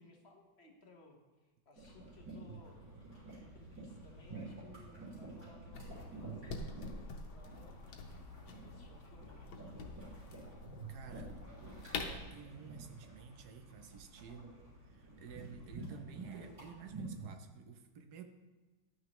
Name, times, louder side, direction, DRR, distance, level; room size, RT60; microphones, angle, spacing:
voice 1, 0.0-2.8 3.4-7.8 8.4-9.8, left 3 dB, 40° left, 2 dB, 1.0 m, -61 dB
sound 1, 1.8-17.3, right 2 dB, 45° right, 3.7 m, -50 dB
sound 2, 5.7-12.3, left 4 dB, 80° left, 1.7 m, -46 dB
voice 2, 10.9-11.4 11.9-14.5 14.8-18.2, right 7 dB, 65° right, 7 dB, 1.1 m, -51 dB
11.5 x 8.9 x 3.1 m, 1.2 s
omnidirectional pair, 2.2 m